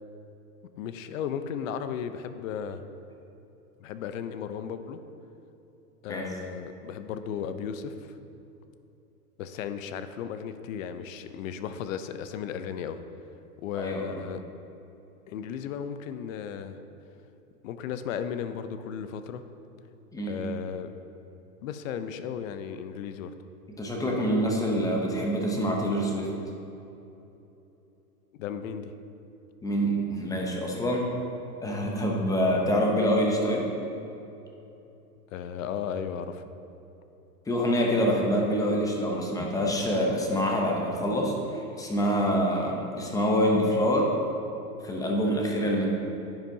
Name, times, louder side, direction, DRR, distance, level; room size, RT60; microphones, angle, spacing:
voice 1, 0.8-2.8 3.8-5.0 6.0-8.1 9.4-13.0 13.6-14.4 15.3-16.8 17.6-19.4 20.3-20.9 21.6-23.3 28.3-28.9 35.3-36.4, left 8 dB, 55° left, 10 dB, 0.6 m, -35 dB
voice 2, 13.7-14.2 20.1-20.4 23.8-26.3 29.6-31.1 31.6-33.7 37.5-44.1 44.8-45.9, equal, 5° left, -1 dB, 0.6 m, -26 dB
10.0 x 7.4 x 2.7 m, 2.9 s
hypercardioid pair, 125°, 48 cm